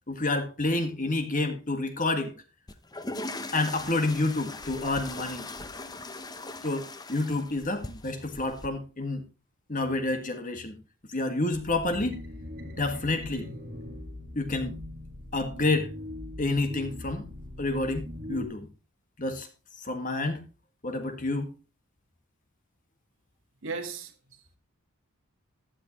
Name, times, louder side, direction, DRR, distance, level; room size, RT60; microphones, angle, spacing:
voice 1, 0.1-2.3 3.5-5.5 6.6-9.2 9.7-10.8 11.1-12.2 12.7-13.5 14.4-14.7 15.3-15.9 16.4-17.3 17.6-18.7 19.2-19.5 19.8-20.4 20.8-21.5, left 2 dB, 35° left, 1.8 m, -29 dB
sound 1, 2.7-8.7, left 2 dB, 15° left, 0.8 m, -40 dB
sound 2, 11.5-18.4, left 1 dB, 40° right, 2.0 m, -41 dB
voice 2, 23.6-24.6, right 4 dB, 60° right, 1.8 m, -37 dB
15.0 x 10.0 x 3.0 m
head